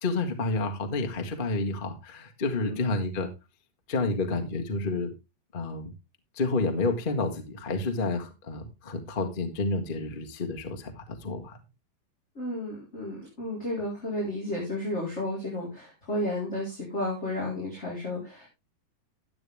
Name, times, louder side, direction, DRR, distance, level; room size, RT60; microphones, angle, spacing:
voice 1, 0.0-3.3 3.9-5.1 5.5-5.9 6.3-11.6, left 3 dB, 85° left, 4 dB, 0.4 m, -30 dB
voice 2, 2.5-2.8 12.3-18.5, left 1 dB, 20° left, -4 dB, 4.2 m, -32 dB
12.0 x 8.7 x 3.5 m, 0.24 s
omnidirectional pair, 4.1 m